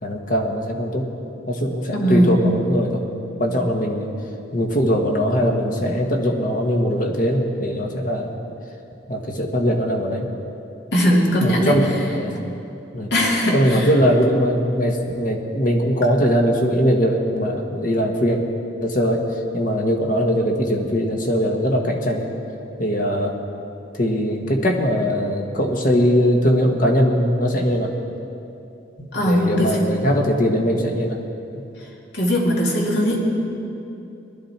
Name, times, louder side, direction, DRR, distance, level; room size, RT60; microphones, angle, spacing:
voice 1, 0.0-1.1 1.5-3.0 3.4-4.1 4.5-8.4 9.1-10.3 11.4-12.4 12.9-13.1 13.5-18.4 18.8-19.2 19.5-22.3 22.8-23.3 23.9-27.9 29.0-31.2 31.5-31.6, equal, 50° left, 2 dB, 1.5 m, -21 dB
voice 2, 1.9-2.4 10.9-11.7 13.1-13.8 29.1-29.8 32.1-33.2, equal, 65° left, -2 dB, 2.5 m, -19 dB
19.5 x 12.0 x 4.4 m, 2.7 s
head